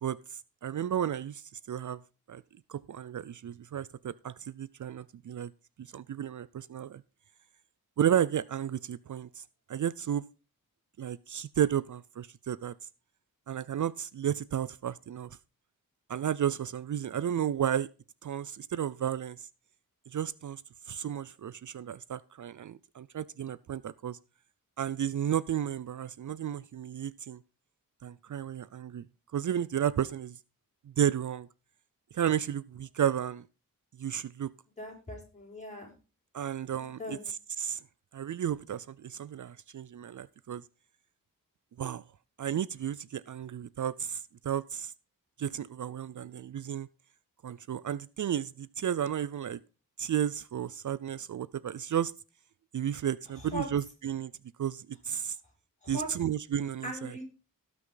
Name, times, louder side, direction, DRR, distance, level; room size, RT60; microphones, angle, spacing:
voice 1, 0.0-2.0 2.3-2.4 2.7-5.5 5.8-7.0 8.0-10.2 11.0-12.8 13.5-15.4 16.1-17.9 18.2-19.5 20.1-20.6 20.9-24.2 24.8-27.4 28.0-29.1 29.3-30.4 30.9-31.5 32.1-33.4 34.0-34.5 36.3-37.8 38.1-40.6 41.8-42.0 42.4-44.9 45.4-46.9 47.4-49.6 50.0-52.1 52.7-54.3 54.6-55.4 55.9-57.2, right 9 dB, 60° right, 0.5 m, -33 dB
voice 2, 34.8-35.9 37.0-37.2 53.4-53.6 55.8-56.1 56.8-57.2, equal, 20° left, 5.7 m, -39 dB
18.0 x 6.1 x 3.9 m
wide cardioid pair, 130°, 34 cm